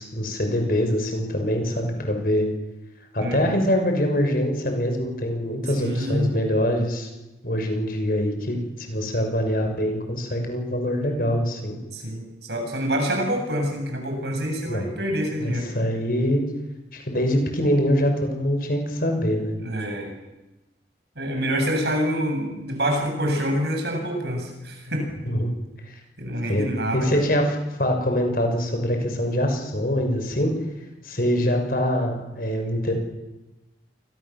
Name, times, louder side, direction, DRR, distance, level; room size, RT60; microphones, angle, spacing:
voice 1, 0.0-2.5 3.1-7.1 7.4-11.8 14.6-14.9 15.4-16.4 16.9-19.6 25.3-25.5 25.9-26.0 26.4-30.5 31.0-32.9, equal, 55° left, 4 dB, 6.4 m, -24 dB
voice 2, 3.2-3.6 5.8-6.3 11.9-15.7 19.6-20.1 21.2-25.1 26.2-27.2, equal, 70° right, 3 dB, 7.8 m, -26 dB
28.0 x 22.5 x 7.5 m, 1.0 s
head